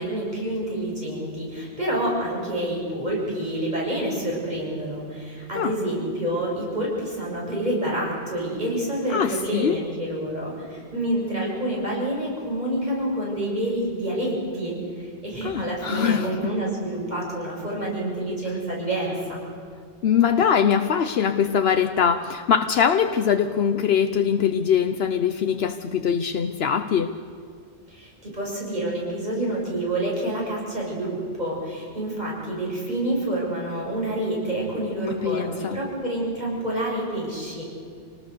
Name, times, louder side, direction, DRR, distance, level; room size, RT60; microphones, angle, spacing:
voice 1, 0.0-19.4 27.9-37.6, right 1 dB, 40° right, 7.3 m, -28 dB
voice 2, 9.1-9.8 15.4-16.5 20.0-27.2 35.1-35.8, left 7 dB, 75° left, 1.0 m, -22 dB
27.5 x 19.0 x 6.7 m
omnidirectional pair, 1.1 m